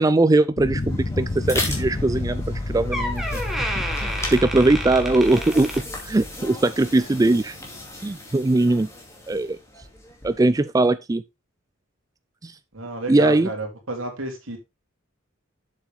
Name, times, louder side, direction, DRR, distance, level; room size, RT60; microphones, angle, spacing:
voice 1, 0.0-3.4 4.0-5.7 6.0-7.6 8.0-8.9 9.3-9.6 10.2-11.2 12.4-12.5 13.1-13.5, right 2 dB, 15° right, 0.3 m, -20 dB
sound 1, 0.6-6.3, left 2 dB, 35° left, 0.6 m, -30 dB
sound 2, 0.7-10.5, left 2 dB, 15° left, 2.4 m, -37 dB
Door, 2.4-2.6 2.9-6.4 6.8-7.0 7.8-7.9, equal, ahead, 1.9 m, -31 dB
voice 2, 12.7-14.6, right 2 dB, 80° right, 3.0 m, -31 dB
7.4 x 7.2 x 3.5 m
head